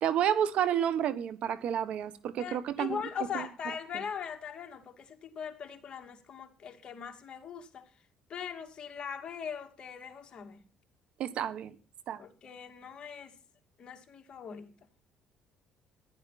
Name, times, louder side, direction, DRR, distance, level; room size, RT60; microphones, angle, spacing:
voice 1, 0.0-3.0 3.3-3.5 11.2-11.7 12.1-12.2, right 10 dB, 65° right, 1.2 m, -30 dB
voice 2, 2.4-7.9 8.3-10.6 12.2-13.3 13.8-14.8, left 7 dB, 45° left, 2.4 m, -40 dB
15.0 x 11.0 x 4.2 m
cardioid pair, 105°, 2 cm